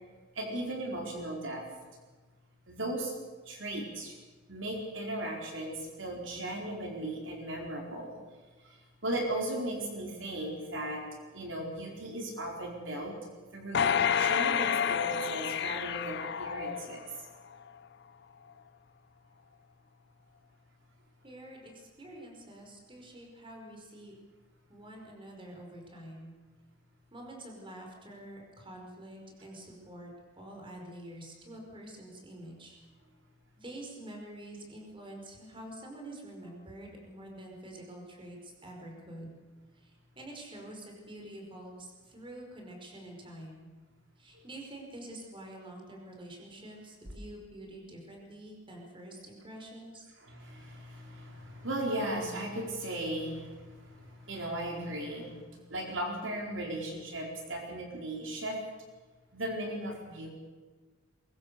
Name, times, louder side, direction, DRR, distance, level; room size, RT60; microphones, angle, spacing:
voice 1, 0.3-1.6 2.7-3.1 3.5-4.2 4.5-8.2 8.6-11.0 11.3-13.1 13.5-17.0 44.3-44.4 50.2-58.6 59.3-60.3, right 1 dB, 70° right, 1 dB, 4.6 m, -37 dB
sound 1, 13.7-17.2 17.7-17.8, left 8 dB, 60° left, 0.7 m, -29 dB
voice 2, 21.2-24.1 24.7-26.3 27.1-32.8 33.6-39.3 39.7-43.7 44.2-50.1, right 1 dB, 25° right, 1 dB, 5.1 m, -47 dB
23.0 x 22.5 x 6.9 m, 1.4 s
head